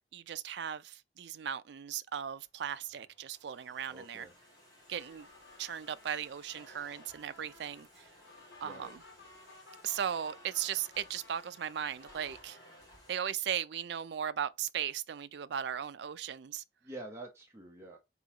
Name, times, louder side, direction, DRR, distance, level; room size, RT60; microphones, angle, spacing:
voice 1, 0.0-4.3 4.9-5.3 5.6-8.1 8.6-9.0 9.8-12.6 13.1-16.6, right 9 dB, 70° right, 0.4 m, -37 dB
Domestic sounds home sounds, 2.4-13.1, equal, 20° left, 1.9 m, -59 dB
voice 2, 3.9-4.3 8.6-8.9 16.8-18.0, right 2 dB, 15° right, 0.8 m, -47 dB
sound 1, 4.9-12.3, left 2 dB, 85° left, 1.3 m, -57 dB
3.9 x 3.7 x 2.8 m
head